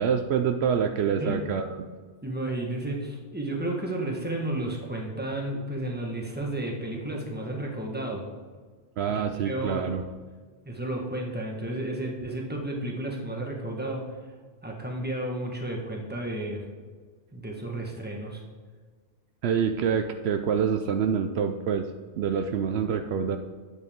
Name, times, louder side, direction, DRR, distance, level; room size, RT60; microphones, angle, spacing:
voice 1, 0.0-1.7 9.0-10.0 19.4-21.9 22.2-23.4, right 7 dB, 70° right, 6 dB, 0.8 m, -26 dB
voice 2, 1.2-1.5 2.2-8.3 9.1-9.9 10.6-14.0 14.6-16.6 17.3-18.4, right 1 dB, 10° right, 0 dB, 1.4 m, -32 dB
9.3 x 8.1 x 3.6 m, 1.5 s
omnidirectional pair, 1.1 m